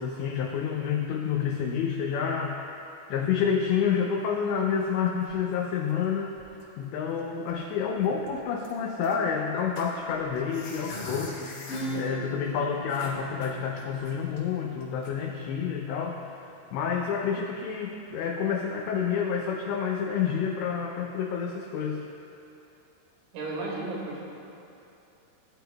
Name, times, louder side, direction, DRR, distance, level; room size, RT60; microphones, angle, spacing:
voice 1, 0.0-2.6 3.1-6.3 6.8-11.6 11.9-16.2 16.7-22.0, left 7 dB, 90° left, 1 dB, 2.5 m, -29 dB
sound 1, 4.7-6.1 6.3-6.8 7.2-7.3 7.5-7.7 8.0-9.2 9.8-12.1 12.5-12.6 12.9-14.4 14.8-15.1, left 2 dB, 50° left, 3.0 m, -43 dB
Acoustic guitar / Strum, 11.7-17.1, equal, 70° left, 3.0 m, -40 dB
voice 2, 23.3-24.3, right 2 dB, 80° right, -4 dB, 4.6 m, -34 dB
19.5 x 11.5 x 2.3 m, 2.7 s
omnidirectional pair, 5.9 m